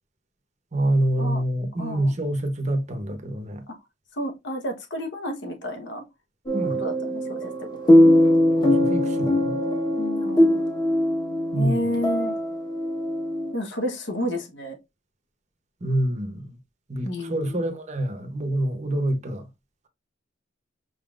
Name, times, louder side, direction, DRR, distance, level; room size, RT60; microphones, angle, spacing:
voice 1, 0.7-3.6 6.5-6.8 8.6-9.6 11.5-11.9 15.8-16.6 16.9-19.5, right 1 dB, 35° right, 0.8 m, -26 dB
voice 2, 1.8-2.1 3.7-3.8 4.1-6.0 6.8-7.9 10.0-10.6 11.5-12.3 13.5-14.8 17.0-17.6, left 1 dB, 65° left, 1.1 m, -31 dB
sound 1, 6.5-13.5, left 1 dB, 20° left, 1.0 m, -21 dB
5.5 x 3.7 x 2.4 m
head